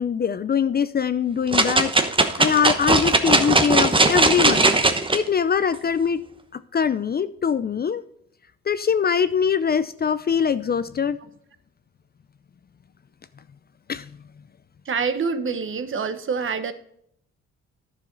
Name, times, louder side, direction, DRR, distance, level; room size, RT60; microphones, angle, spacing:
voice 1, 0.0-1.9 2.4-4.7 5.1-6.2 6.5-8.0 8.7-11.2 13.9-14.1, left 7 dB, 30° left, 13 dB, 0.5 m, -22 dB
sound 1, 1.5-5.2 5.7-5.8, right 2 dB, 15° right, 1.0 m, -19 dB
voice 2, 14.9-16.7, right 5 dB, 40° right, 11 dB, 1.1 m, -26 dB
10.5 x 7.0 x 3.9 m, 0.71 s
cardioid pair, 90°, 30 cm